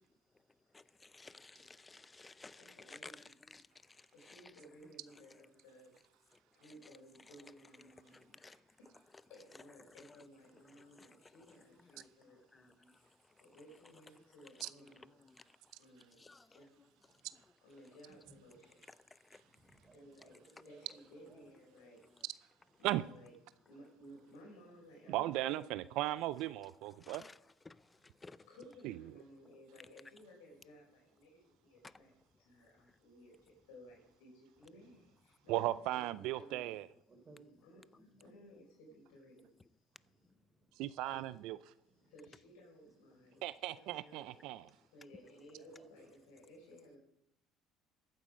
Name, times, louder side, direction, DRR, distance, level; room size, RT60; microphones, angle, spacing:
voice 1, 0.7-4.4 8.1-8.6 9.9-10.2 11.0-11.4 11.9-12.1 12.3-13.0 14.2-14.3 14.8-14.9 15.2-15.4 16.3-16.4 19.1-19.4 27.0-27.4 27.7-28.5 31.8-31.9, left 3 dB, 20° left, 0.5 m, -56 dB
voice 2, 2.6-3.3 4.1-5.9 6.5-8.9 9.3-15.3 15.8-16.2 16.5-16.7 17.0-17.3 17.6-19.7 19.9-20.4 20.6-22.0 22.8-23.3 23.6-25.7 28.5-32.1 32.4-36.8 37.6-37.8 38.2-39.6 41.1-41.3 42.0-47.0, equal, 85° left, 4.8 m, -58 dB
voice 3, 17.0-17.4 18.1-18.6 19.3-21.5 22.8-22.9 25.0-25.2 27.9-28.5 31.7-32.2 32.7-32.8 34.6-35.0 35.3-35.5 37.1-38.3 39.9-41.2 41.8-42.3 43.1-43.4 44.9-45.2 45.6-46.1 46.7-46.8, right 2 dB, 30° right, 3.9 m, -66 dB
voice 4, 25.1-27.2 28.8-28.9 35.5-36.8 40.8-41.6 43.4-44.7, right 15 dB, 75° right, 0.4 m, -37 dB
14.0 x 9.2 x 4.9 m
supercardioid pair, 90°, 0 cm